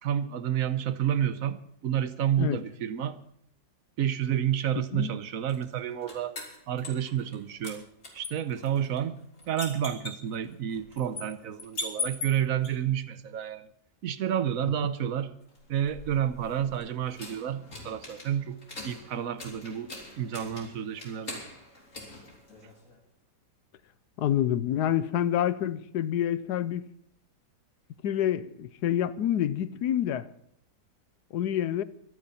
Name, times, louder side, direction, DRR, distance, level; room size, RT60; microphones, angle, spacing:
voice 1, 0.0-3.2 4.0-6.4 6.7-7.9 8.1-9.2 9.5-13.7 14.0-15.3 15.7-21.4, right 10 dB, 60° right, 1.2 m, -30 dB
sound 1, 5.5-7.4 7.6-12.7 15.5-23.0, left 3 dB, 50° left, 3.8 m, -41 dB
voice 2, 24.2-26.9 28.0-30.3 31.3-31.8, left 11 dB, 75° left, 1.3 m, -27 dB
24.5 x 9.5 x 4.3 m
omnidirectional pair, 1.8 m